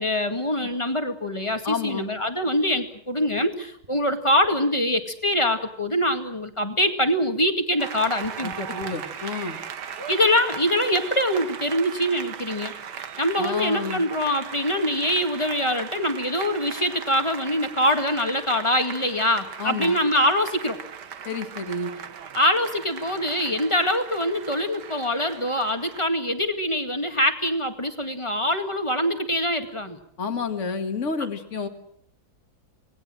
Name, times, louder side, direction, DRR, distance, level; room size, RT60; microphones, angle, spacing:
voice 1, 0.0-9.0 10.1-20.8 22.3-30.0, left 1 dB, 15° left, 6 dB, 2.0 m, -24 dB
voice 2, 1.6-2.1 8.7-9.6 13.4-14.0 19.6-20.0 21.2-21.9 30.2-31.7, left 4 dB, 35° left, 8 dB, 2.2 m, -29 dB
sound 1, 3.8-3.9 4.4-4.5 5.5-5.6 5.9-6.0 6.4-6.5 8.2-8.9 9.4-9.5 9.9-10.2 11.1-11.2 11.4-11.5, right 5 dB, 30° right, 1.9 m, -43 dB
Applause, 7.8-26.1, right 8 dB, 60° right, 1.7 m, -38 dB
26.5 x 20.0 x 7.7 m, 0.66 s
omnidirectional pair, 2.2 m